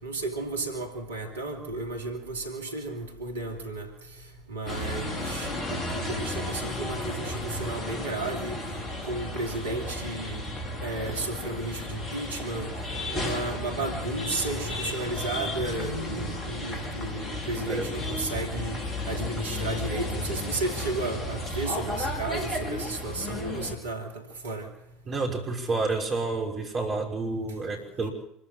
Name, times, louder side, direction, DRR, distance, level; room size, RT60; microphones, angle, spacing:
voice 1, 0.0-3.9 4.5-8.6 9.1-10.4 10.8-12.7 13.1-18.8 19.1-24.1 24.4-24.7, right 2 dB, 75° right, 3 dB, 2.7 m, -33 dB
sound 1, 4.7-23.7, left 2 dB, 25° left, 5.5 m, -33 dB
voice 2, 25.0-28.1, right 3 dB, 30° right, 1 dB, 5.9 m, -29 dB
26.5 x 14.5 x 7.4 m, 0.75 s
figure-of-eight pair, 70°, 0 cm